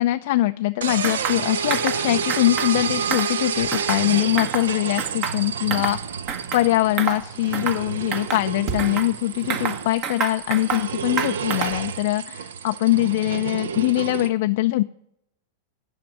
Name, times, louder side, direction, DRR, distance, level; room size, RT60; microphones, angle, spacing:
voice 1, 0.0-6.0 6.5-14.8, left 16 dB, 60° left, 9 dB, 0.3 m, -22 dB
sound 1, 0.8-14.3, right 6 dB, 70° right, 0.6 m, -29 dB
sound 2, 1.0-1.4 1.7-2.0 2.3-2.7 3.0-4.1 4.4-4.7 5.0-6.0 6.3-6.7 7.0-7.2 7.5-7.8 8.1-9.1 9.5-10.9 11.2-11.9, right 6 dB, 45° right, 1.3 m, -28 dB
10.5 x 5.0 x 8.4 m, 0.74 s
figure-of-eight pair, 95°, 0 cm